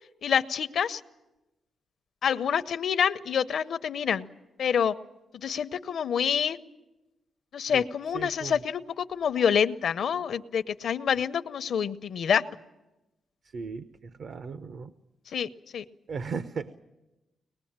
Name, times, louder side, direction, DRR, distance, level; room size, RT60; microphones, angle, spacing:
voice 1, 0.2-1.0 2.2-4.3 4.6-4.9 5.3-6.6 7.5-12.4 15.3-15.8, left 7 dB, 65° left, 12 dB, 0.7 m, -27 dB
voice 2, 8.1-8.6 13.5-14.9 16.1-16.8, right 5 dB, 60° right, 11 dB, 0.7 m, -36 dB
23.5 x 20.0 x 8.8 m, 1.0 s
wide cardioid pair, 130°, 0 cm